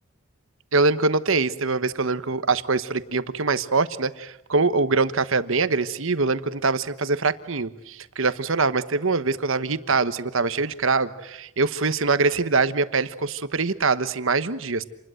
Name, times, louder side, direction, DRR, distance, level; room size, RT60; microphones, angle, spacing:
voice 1, 0.7-14.8, right 4 dB, 60° right, 13 dB, 1.1 m, -23 dB
28.0 x 20.5 x 7.8 m, 0.84 s
head